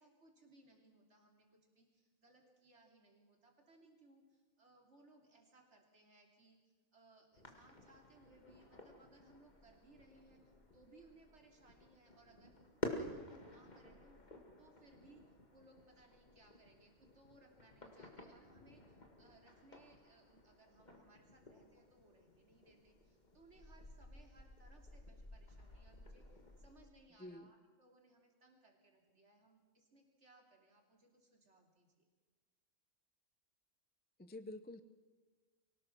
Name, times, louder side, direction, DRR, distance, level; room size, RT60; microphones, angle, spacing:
voice 1, 0.0-10.4 10.7-12.5 12.9-15.2 15.5-32.1, right 2 dB, 50° right, 2 dB, 3.5 m, -66 dB
sound 1, 7.3-26.9, left 2 dB, 30° left, 2.1 m, -52 dB
voice 2, 34.2-34.8, left 1 dB, 10° left, 11 dB, 0.5 m, -49 dB
23.5 x 18.5 x 6.1 m, 1.4 s
omnidirectional pair, 1.5 m